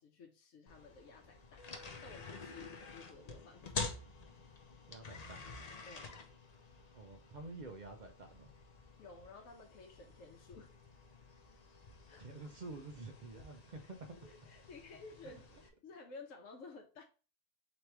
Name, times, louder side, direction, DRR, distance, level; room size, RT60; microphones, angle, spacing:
voice 1, 0.0-1.7 2.0-3.9 5.8-6.1 9.0-10.7 12.1-12.2 14.2-17.0, left 3 dB, 65° left, 1 dB, 1.0 m, -54 dB
sound 1, 0.7-15.7, left 4 dB, 50° left, 0.5 m, -49 dB
voice 2, 4.9-5.5 6.9-8.5 12.2-14.2, right 3 dB, 70° right, 4 dB, 0.4 m, -49 dB
3.5 x 3.0 x 4.4 m, 0.36 s
omnidirectional pair, 1.5 m